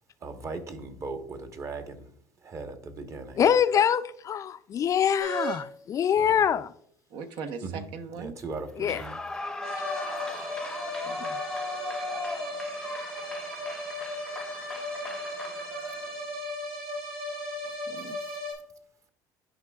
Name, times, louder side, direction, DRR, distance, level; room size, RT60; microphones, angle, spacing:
voice 1, 0.2-2.1 2.4-3.4 6.2-6.4 7.6-7.8 8.2-9.2, right 3 dB, 35° right, 1.0 m, -38 dB
voice 2, 3.4-6.7 8.8-9.0, left 8 dB, 40° left, 0.4 m, -24 dB
sound 1, 5.2-5.6 9.6-18.5, equal, 85° right, 3.1 m, -36 dB
voice 3, 7.1-8.4 11.1-11.4 17.9-18.2, right 5 dB, 70° right, 0.8 m, -39 dB
Clapping / Cheering / Applause, 8.8-16.2, left 3 dB, 5° left, 0.7 m, -38 dB
11.5 x 5.1 x 2.3 m
supercardioid pair, 95°, 9 cm